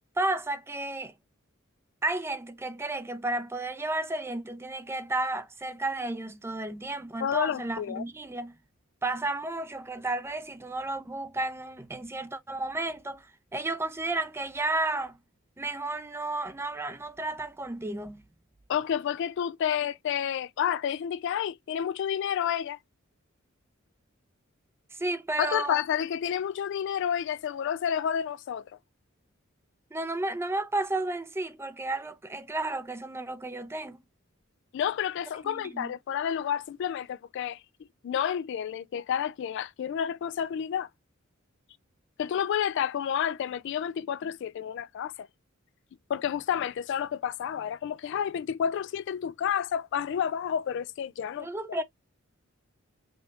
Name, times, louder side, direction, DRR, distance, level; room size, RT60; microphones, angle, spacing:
voice 1, 0.2-1.1 2.0-8.6 9.0-15.2 15.6-18.2 24.9-25.8 29.9-34.0 35.4-35.9 51.4-51.8, right 2 dB, 10° right, 0.5 m, -32 dB
voice 2, 7.2-8.0 18.7-22.8 25.4-28.6 34.7-37.6 38.0-40.9 42.2-45.3 46.1-51.8, left 8 dB, 60° left, 0.3 m, -30 dB
5.2 x 2.7 x 2.4 m
head